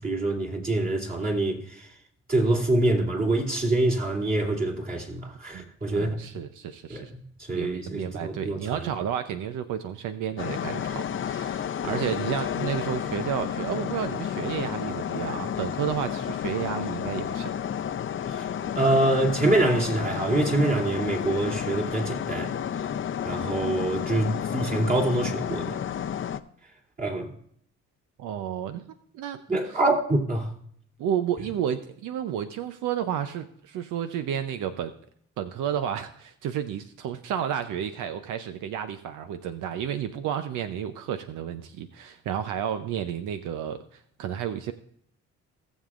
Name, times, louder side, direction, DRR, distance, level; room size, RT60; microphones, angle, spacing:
voice 1, 0.0-1.9 2.3-6.2 6.9-8.9 18.3-18.4 18.7-22.5 23.2-25.8 27.0-27.3 29.5-30.5, right 2 dB, 30° right, 2.8 m, -25 dB
voice 2, 5.5-7.1 7.5-17.6 28.2-28.8 29.1-29.8 31.0-34.9 35.4-44.7, right 9 dB, 85° right, 0.7 m, -31 dB
sound 1, 10.4-26.4, left 9 dB, 40° left, 0.6 m, -31 dB
18.5 x 7.4 x 2.5 m
cardioid pair, 90°, 30 cm